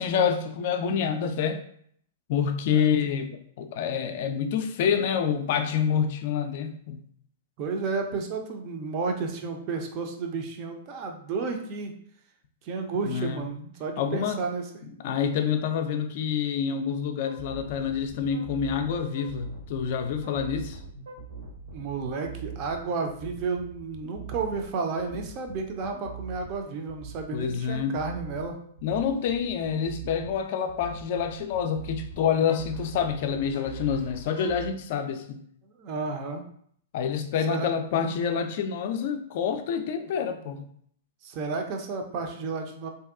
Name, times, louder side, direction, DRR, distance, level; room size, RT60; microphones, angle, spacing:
voice 1, 0.0-1.6 2.3-3.3 3.6-7.0 13.0-13.5 14.0-14.4 15.0-20.8 27.3-28.0 28.8-35.4 36.9-40.6, left 7 dB, 50° left, 7 dB, 0.3 m, -27 dB
voice 2, 7.6-11.9 12.6-14.9 21.7-28.6 35.6-36.5 37.5-37.7 41.2-42.9, right 4 dB, 40° right, 4 dB, 0.4 m, -32 dB
sound 1, 17.3-34.7, right 5 dB, 75° right, 0.9 m, -42 dB
2.6 x 2.2 x 2.4 m, 0.63 s
figure-of-eight pair, 105°, 0 cm